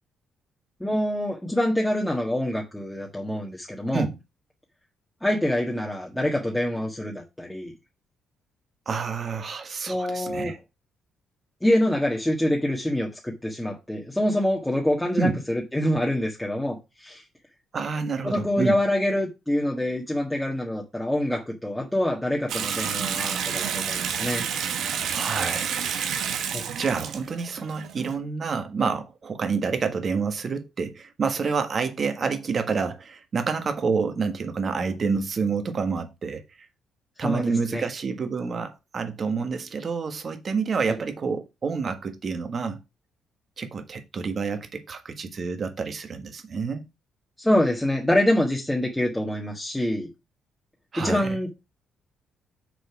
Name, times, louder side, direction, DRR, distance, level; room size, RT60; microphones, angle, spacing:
voice 1, 0.8-4.0 5.2-7.7 9.9-10.5 11.6-17.2 18.2-24.4 26.5-26.6 37.2-37.4 37.7-37.9 40.9-41.0 47.4-50.1 51.0-51.5, left 1 dB, 5° left, 1.5 m, -25 dB
voice 2, 8.8-10.6 15.2-15.4 17.7-18.8 25.1-25.8 26.8-36.4 37.2-42.8 43.6-46.9 50.9-51.4, right 5 dB, 45° right, 1.5 m, -28 dB
Water tap faucet / Sink (filling or washing) / Bathtub (filling or washing), 22.5-28.2, right 8 dB, 75° right, 1.2 m, -29 dB
6.7 x 4.2 x 5.9 m
cardioid pair, 90°, 0 cm